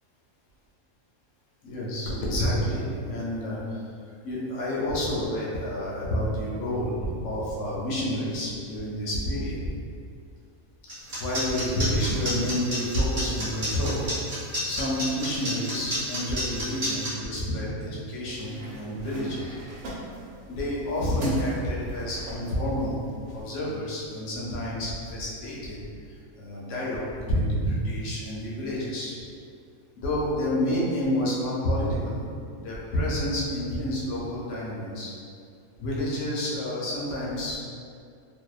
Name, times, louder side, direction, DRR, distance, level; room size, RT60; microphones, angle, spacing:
voice 1, 1.6-3.8 4.2-9.6 11.2-14.0 14.6-19.4 20.5-23.0 23.3-25.8 26.1-29.1 30.0-32.2 32.6-35.1 35.8-37.6, equal, 65° left, -6 dB, 0.9 m, -29 dB
sound 1, 10.9-17.1, equal, 40° right, 0.8 m, -30 dB
sound 2, 18.3-23.4, equal, 90° right, 1.1 m, -40 dB
2.7 x 2.0 x 2.2 m, 2.4 s
omnidirectional pair, 1.5 m